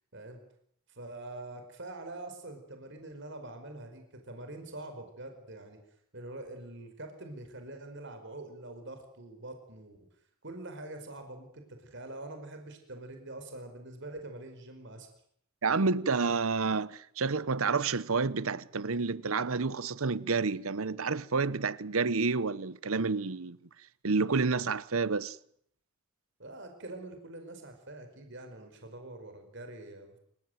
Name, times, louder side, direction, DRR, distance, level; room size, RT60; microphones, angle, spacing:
voice 1, 0.9-5.8 6.1-10.0 10.4-15.1 26.4-30.2, right 2 dB, 55° right, 5.0 m, -45 dB
voice 2, 15.6-23.6 24.0-25.4, right 4 dB, 80° right, 0.9 m, -29 dB
28.0 x 16.5 x 9.3 m
head